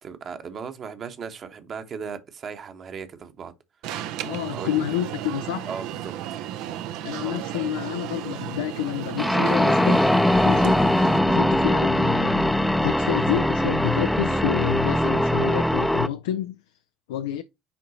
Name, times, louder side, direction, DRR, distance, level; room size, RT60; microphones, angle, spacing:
voice 1, 0.0-3.5 4.5-4.8 5.7-6.1 7.2-7.4, right 6 dB, 40° right, 1.2 m, -36 dB
Alarm, 3.8-11.2, right 11 dB, 60° right, 0.6 m, -34 dB
voice 2, 4.2-5.8 7.0-10.1 10.4-16.6 17.1-17.4, left 12 dB, 70° left, 0.4 m, -29 dB
sound 1, 9.2-16.1, left 1 dB, 5° left, 0.6 m, -21 dB
10.0 x 3.8 x 2.8 m
figure-of-eight pair, 60°, 0 cm